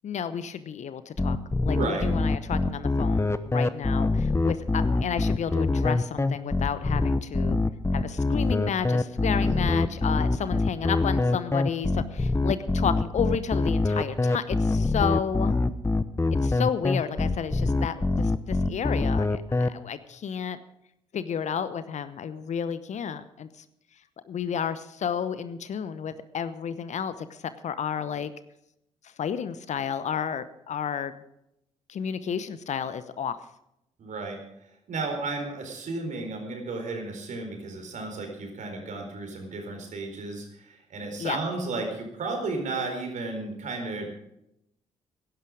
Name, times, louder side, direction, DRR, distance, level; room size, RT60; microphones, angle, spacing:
voice 1, 0.0-7.6 7.9-15.6 16.3-20.6 21.1-23.5 24.3-28.3 29.2-31.2 31.9-33.4 41.2-41.4, left 7 dB, 50° left, 14 dB, 0.9 m, -31 dB
sound 1, 1.2-19.7, left 3 dB, 15° left, 0.9 m, -24 dB
voice 2, 1.7-2.1 9.4-9.9 34.0-34.4 34.9-44.1, right 3 dB, 55° right, 3 dB, 4.3 m, -33 dB
17.5 x 11.0 x 5.1 m, 0.80 s
figure-of-eight pair, 45°, 15 cm